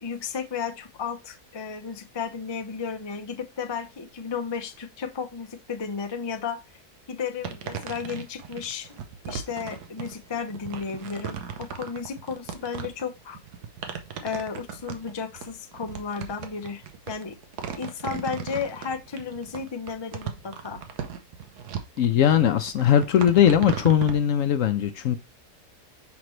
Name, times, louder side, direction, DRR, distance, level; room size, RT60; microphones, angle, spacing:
voice 1, 0.0-6.6 7.1-8.9 9.3-13.4 14.2-17.4 17.8-20.8, left 6 dB, 35° left, 0.4 m, -33 dB
sound 1, 7.4-24.2, right 7 dB, 75° right, 1.4 m, -36 dB
voice 2, 22.0-25.2, left 9 dB, 65° left, 0.9 m, -20 dB
6.0 x 5.3 x 3.1 m
omnidirectional pair, 1.7 m